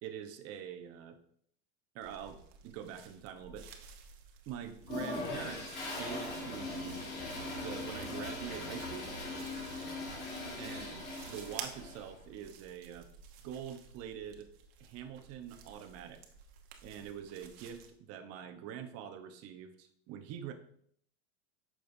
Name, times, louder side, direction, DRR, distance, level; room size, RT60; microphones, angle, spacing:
voice 1, 0.0-1.2 1.9-3.7 4.5-7.2 7.6-9.1 10.6-13.1 13.4-14.5 14.8-16.2 16.8-20.5, right 9 dB, 50° right, 7 dB, 1.0 m, -45 dB
sound 1, 2.0-17.9, right 6 dB, 70° right, 1.2 m, -53 dB
Toilet flush, 4.8-12.1, left 2 dB, 30° left, 2.6 m, -40 dB
8.5 x 6.4 x 2.7 m, 0.65 s
supercardioid pair, 130°, 32 cm